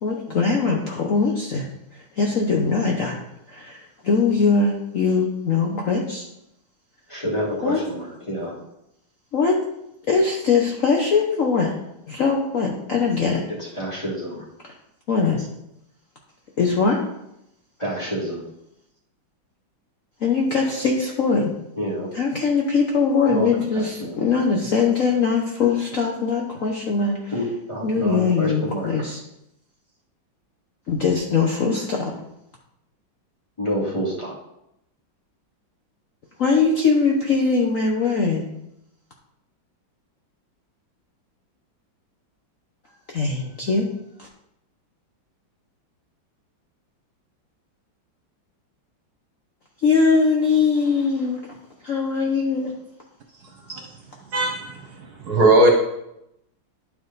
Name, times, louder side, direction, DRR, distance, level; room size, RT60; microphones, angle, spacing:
voice 1, 0.0-1.7 1.9-3.2 3.5-6.2 7.6-7.8 9.3-9.6 10.1-11.7 12.1-13.4 15.1-15.5 16.6-17.0 20.2-21.5 22.1-27.3 27.8-29.2 30.9-32.1 36.4-38.5 43.1-43.9 44.2-44.3 49.8-51.4 51.8-52.7 53.7-53.8, left 4 dB, 50° left, 0 dB, 1.0 m, -21 dB
voice 2, 7.1-8.5 13.6-14.4 17.8-18.4 21.8-22.1 23.3-24.2 27.3-29.1 33.6-34.3, equal, 15° left, -4 dB, 2.1 m, -28 dB
voice 3, 54.3-55.7, right 1 dB, 60° right, 2 dB, 1.3 m, -18 dB
11.0 x 4.8 x 4.0 m, 0.83 s
omnidirectional pair, 2.2 m